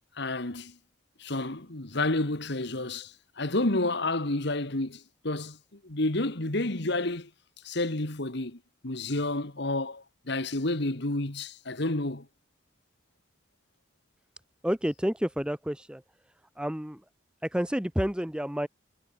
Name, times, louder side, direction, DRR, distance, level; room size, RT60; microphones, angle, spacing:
voice 1, 0.2-0.8 1.2-7.3 7.6-12.3, left 2 dB, 60° left, 2.1 m, -30 dB
voice 2, 14.6-16.0 16.6-17.0 17.4-18.7, equal, 5° right, 0.8 m, -29 dB
head